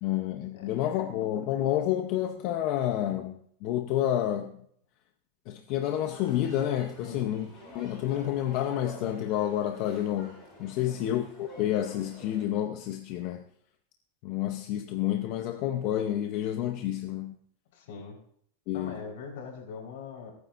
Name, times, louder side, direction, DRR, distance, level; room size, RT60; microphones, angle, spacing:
voice 1, 0.0-4.6 5.5-7.5 7.7-13.4 14.2-17.4 18.7-19.0, left 12 dB, 40° left, 6 dB, 0.7 m, -29 dB
sound 1, 5.8-12.4, left 1 dB, 20° left, 6.7 m, -48 dB
voice 2, 10.7-11.1 17.7-18.2 18.7-20.3, left 5 dB, 65° left, 1 dB, 4.3 m, -42 dB
26.5 x 9.6 x 2.6 m, 0.66 s
supercardioid pair, 165°, 0 cm